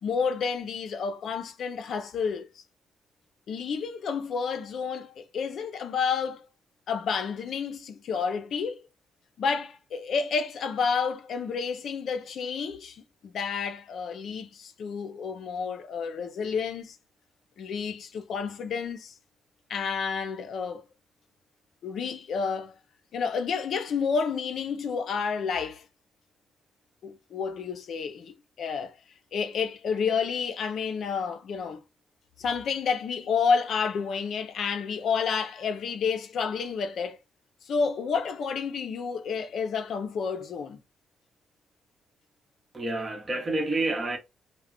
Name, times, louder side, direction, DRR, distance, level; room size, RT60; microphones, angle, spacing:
voice 1, 0.0-2.5 3.5-6.5 6.9-8.8 9.4-17.0 17.6-19.1 19.7-20.8 21.8-22.7 23.1-25.8 27.0-28.9 29.3-31.8 32.4-37.2 37.7-40.8, left 5 dB, 65° left, 0.4 m, -30 dB
voice 2, 42.7-44.2, right 2 dB, 30° right, 0.9 m, -28 dB
2.3 x 2.1 x 3.5 m
cardioid pair, 90°, 0 cm